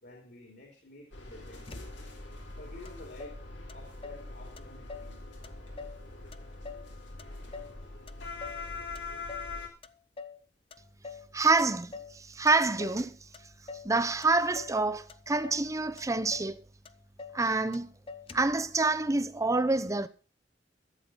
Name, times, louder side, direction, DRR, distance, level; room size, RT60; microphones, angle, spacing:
voice 1, 0.0-1.9 2.6-3.3 3.7-5.2 6.2-6.3, left 2 dB, 60° left, 2.8 m, -50 dB
sound 1, 1.1-9.7, left 3 dB, 85° left, 3.0 m, -43 dB
Motor vehicle (road), 1.7-2.3 2.8-2.9 3.2-4.3 4.6-5.2 5.4-6.0 6.3-7.8 8.1-8.7 8.9-9.5 9.8-10.4 10.7-11.3 11.6-12.2 12.5-13.0 13.3-13.9 14.2-14.8 15.1-15.7 16.0-16.1 16.3-16.6 16.8-17.4 17.7-17.8 18.1-18.6, left 4 dB, 30° left, 0.6 m, -45 dB
voice 2, 11.3-13.2 13.8-16.6 17.3-17.9 18.3-20.1, right 3 dB, 20° right, 0.7 m, -27 dB
12.5 x 7.7 x 5.6 m
head